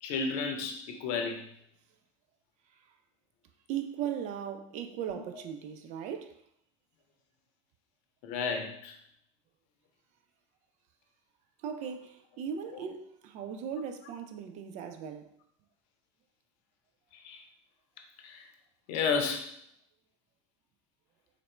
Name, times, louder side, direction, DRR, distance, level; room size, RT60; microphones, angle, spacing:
voice 1, 0.0-1.5 8.2-8.9 17.1-17.4 18.2-18.5 18.9-19.5, left 5 dB, 60° left, 0.7 m, -32 dB
voice 2, 3.7-6.4 11.6-15.3, right 8 dB, 50° right, 0.5 m, -38 dB
4.0 x 2.6 x 3.2 m
hypercardioid pair, 75°, 16 cm